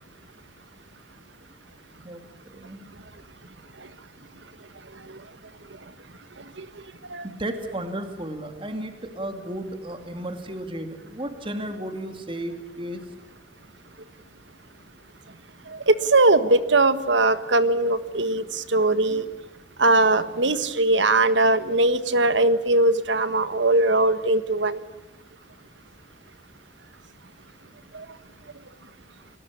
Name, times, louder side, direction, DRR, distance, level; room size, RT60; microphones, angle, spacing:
voice 1, 2.5-2.8 7.2-13.0, right 1 dB, 30° right, 7 dB, 2.6 m, -33 dB
voice 2, 15.7-19.2 19.8-24.8 27.9-28.0, right 2 dB, 90° right, 12 dB, 1.5 m, -20 dB
29.0 x 20.0 x 8.7 m, 1.0 s
head